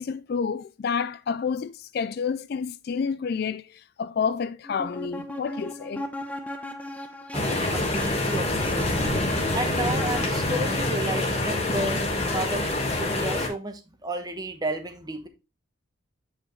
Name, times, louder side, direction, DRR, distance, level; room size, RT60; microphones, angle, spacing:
voice 1, 0.0-6.1, left 6 dB, 50° left, 0.3 m, -29 dB
sound 1, 4.6-11.0, left 1 dB, 5° left, 0.7 m, -39 dB
sound 2, 7.3-13.5, left 2 dB, 30° left, 1.4 m, -26 dB
voice 2, 7.3-9.2 9.5-12.0 12.3-15.3, right 1 dB, 20° right, 1.0 m, -32 dB
8.7 x 5.0 x 3.1 m
head